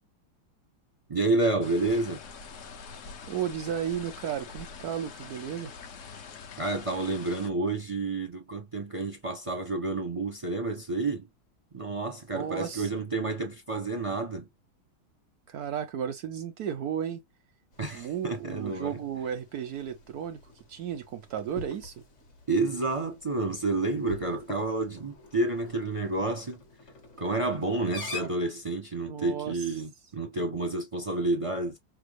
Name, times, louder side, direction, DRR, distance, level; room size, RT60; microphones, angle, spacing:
voice 1, 1.1-2.2 6.6-11.3 11.7-14.5 17.8-19.0 22.5-26.6 27.2-31.8, right 2 dB, 30° right, 0.6 m, -30 dB
sound 1, 1.6-7.5, left 5 dB, 55° left, 0.9 m, -45 dB
voice 2, 3.3-5.7 12.3-13.0 15.5-17.2 17.9-20.4 20.7-21.9 29.1-29.7, right 9 dB, 70° right, 0.9 m, -34 dB
sound 2, 17.7-28.3, left 2 dB, 40° left, 1.6 m, -46 dB
5.9 x 2.0 x 3.1 m
omnidirectional pair, 2.1 m